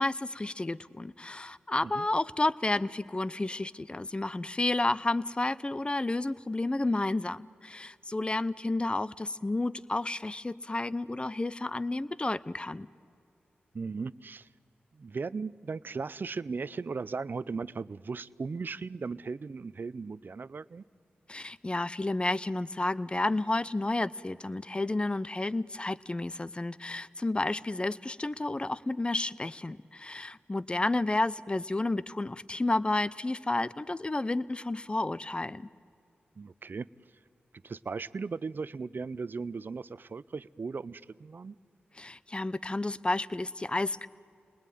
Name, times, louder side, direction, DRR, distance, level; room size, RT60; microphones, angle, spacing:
voice 1, 0.0-12.9 21.3-35.7 42.0-44.1, left 2 dB, 25° left, 17 dB, 0.7 m, -31 dB
voice 2, 13.7-14.5 14.9-20.8 36.4-36.9 37.6-41.6, right 4 dB, 55° right, 18 dB, 0.6 m, -37 dB
29.0 x 20.0 x 9.3 m, 2.4 s
cardioid pair, 45°, 4 cm